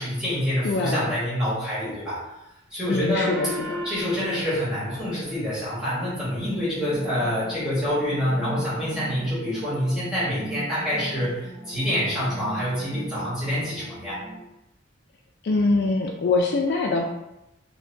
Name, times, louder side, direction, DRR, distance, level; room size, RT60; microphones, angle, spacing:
voice 1, 0.0-2.2 2.7-3.5 3.8-14.2, equal, ahead, -10 dB, 1.4 m, -26 dB
voice 2, 0.6-1.1 2.9-3.8 15.4-17.1, left 3 dB, 55° left, 1 dB, 0.3 m, -24 dB
Gong, 3.2-6.1, equal, 65° right, 0.8 m, -36 dB
sound 1, 6.4-14.4, right 1 dB, 15° left, 1.0 m, -39 dB
4.4 x 2.1 x 2.6 m, 0.88 s
head